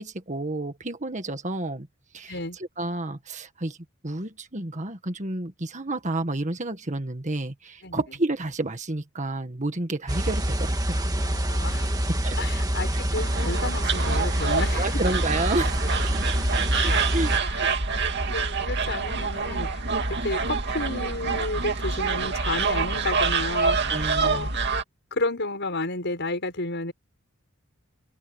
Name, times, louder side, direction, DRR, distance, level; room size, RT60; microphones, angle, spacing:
voice 1, 0.0-1.9 2.1-3.8 4.0-11.1 12.1-12.4 12.9-13.0 14.7-16.0 16.8-17.3 23.9-24.5, right 2 dB, 35° right, 1.8 m, -30 dB
sound 1, 10.1-17.4, right 1 dB, 15° right, 1.6 m, -26 dB
voice 2, 11.2-12.1 12.4-14.9 16.7-17.0 17.4-17.7 18.3-19.8 20.2-24.6 25.1-26.9, left 2 dB, 55° left, 6.7 m, -31 dB
sound 2, 13.2-24.8, right 4 dB, 50° right, 2.4 m, -27 dB
open air
head